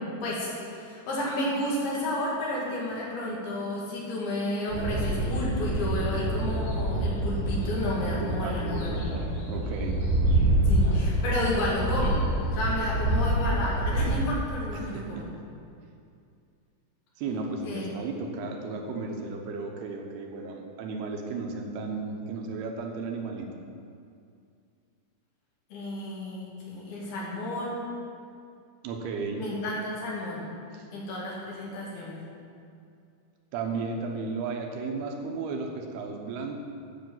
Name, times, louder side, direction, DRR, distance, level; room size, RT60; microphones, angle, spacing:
voice 1, 0.2-9.0 10.7-12.2 12.5-15.2 17.6-17.9 25.7-27.8 29.4-30.4 30.9-32.2, left 1 dB, 70° left, -6 dB, 3.9 m, -31 dB
sound 1, 4.7-14.1, right 1 dB, 50° left, 3.6 m, -26 dB
voice 2, 8.0-10.0 14.7-15.0 17.2-23.5 28.8-29.5 30.7-30.9 33.5-36.6, right 4 dB, 75° right, 2 dB, 3.0 m, -34 dB
10.5 x 5.9 x 7.7 m, 2.5 s
omnidirectional pair, 4.7 m